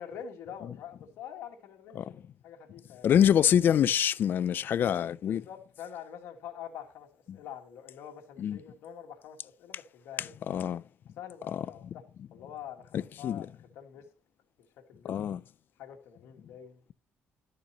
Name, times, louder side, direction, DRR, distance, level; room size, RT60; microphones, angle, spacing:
voice 1, 0.0-2.1 2.4-3.1 5.2-10.4 11.2-12.0 12.3-13.5 13.7-14.0 14.9-15.1 15.8-16.8, left 9 dB, 80° left, 1.6 m, -45 dB
voice 2, 3.0-5.4 8.4-8.6 10.2-10.8 11.5-11.7 12.9-13.5 15.1-15.4, left 9 dB, 50° left, 0.3 m, -25 dB
11.5 x 6.7 x 2.9 m
cardioid pair, 110°, 4 cm